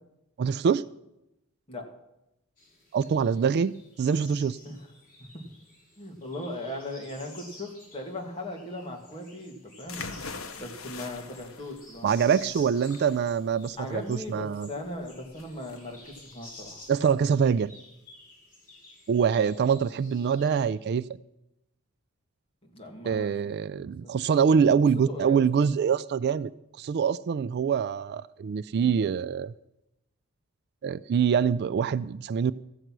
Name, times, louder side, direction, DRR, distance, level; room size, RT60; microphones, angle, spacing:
voice 1, 0.4-0.8 2.9-4.6 12.0-14.7 16.9-17.7 19.1-21.1 23.1-26.5 26.8-29.5 30.8-32.5, right 7 dB, 50° right, 17 dB, 0.3 m, -25 dB
sound 1, 2.6-20.7, left 2 dB, 40° left, 5.3 m, -52 dB
voice 2, 6.0-10.0 10.6-12.1 13.8-16.8 22.7-23.3 23.8-24.2 25.1-25.4, left 1 dB, 25° left, 1 dB, 2.1 m, -38 dB
sound 2, 9.9-17.6, left 4 dB, 70° left, 1.0 m, -44 dB
14.5 x 7.9 x 6.0 m, 0.88 s
head